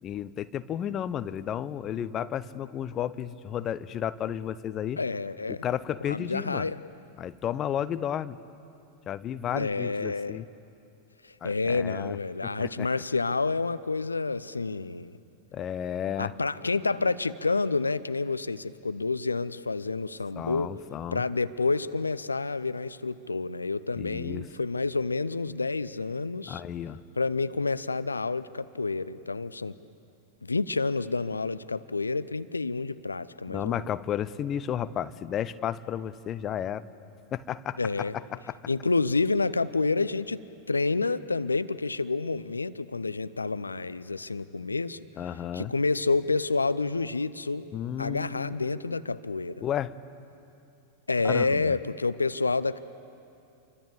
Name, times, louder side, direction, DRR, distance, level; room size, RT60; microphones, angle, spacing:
voice 1, 0.0-5.0 5.5-6.7 7.2-8.4 9.1-10.4 11.4-12.2 12.4-12.9 15.5-16.3 20.4-21.2 24.0-24.5 26.5-27.0 33.5-36.8 37.3-38.6 45.2-45.7 47.7-48.9 49.6-49.9 51.2-51.8, left 10 dB, 30° left, 14 dB, 0.8 m, -33 dB
voice 2, 5.0-5.7 6.1-6.8 9.5-10.4 11.2-15.1 16.2-20.7 21.1-26.6 27.2-29.8 30.4-33.8 37.8-38.1 38.7-45.0 45.5-47.7 48.0-49.6 51.1-52.8, left 3 dB, 80° left, 14 dB, 0.6 m, -29 dB
28.5 x 24.5 x 8.3 m, 2.6 s
figure-of-eight pair, 90°, 0 cm